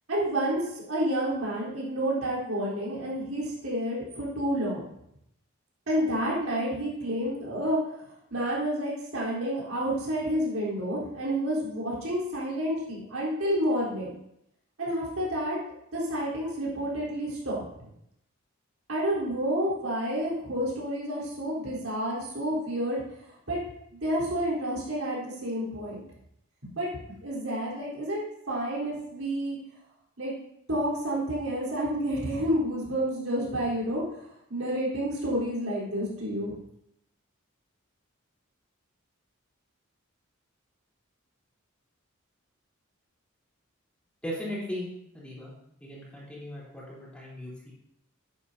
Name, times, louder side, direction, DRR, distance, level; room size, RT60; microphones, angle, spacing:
voice 1, 0.1-4.9 5.9-7.8 8.3-14.2 14.8-15.6 15.9-17.6 18.9-23.0 23.5-23.6 24.0-26.0 26.6-28.2 28.5-29.6 30.2-30.3 30.7-34.0 34.5-36.6, equal, 90° right, -5 dB, 3.9 m, -29 dB
voice 2, 44.2-44.9 45.1-45.5 45.8-47.7, equal, 5° left, -7 dB, 3.6 m, -37 dB
11.0 x 9.8 x 2.8 m, 0.77 s
head